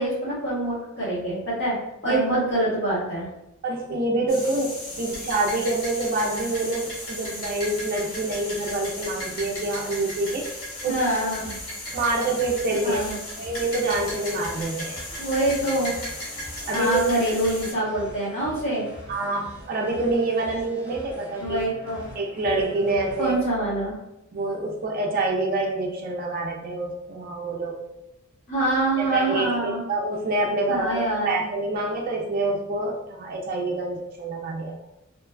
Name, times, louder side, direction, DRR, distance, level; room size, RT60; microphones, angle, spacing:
voice 1, 0.0-1.8 2.0-3.3 10.9-11.5 12.8-13.2 15.2-15.9 16.7-18.9 21.4-22.1 23.2-23.9 28.5-29.8 30.7-31.4, right 1 dB, 55° left, -9 dB, 1.3 m, -25 dB
voice 2, 2.1-2.4 3.6-10.4 10.8-11.0 11.9-13.0 13.4-15.0 16.7-17.0 19.1-21.6 22.1-23.3 24.3-27.8 29.0-34.7, right 2 dB, 40° right, -1 dB, 0.3 m, -26 dB
sound 1, 4.3-17.7, left 1 dB, 70° left, 1.0 m, -35 dB
sound 2, 11.4-23.4, equal, 5° right, 0.7 m, -44 dB
3.2 x 2.1 x 2.2 m, 0.92 s
head